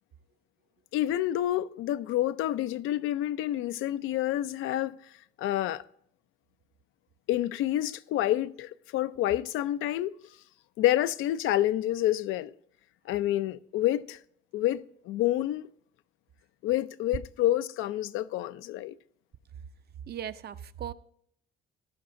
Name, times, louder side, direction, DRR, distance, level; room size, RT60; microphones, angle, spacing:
voice 1, 0.9-4.9 5.4-5.8 7.3-10.1 10.8-12.5 13.1-14.2 14.5-15.7 16.6-18.9, left 13 dB, 90° left, 0.4 m, -28 dB
voice 2, 20.0-20.9, right 9 dB, 55° right, 0.5 m, -38 dB
15.5 x 11.0 x 2.6 m
cardioid pair, 90°, 20 cm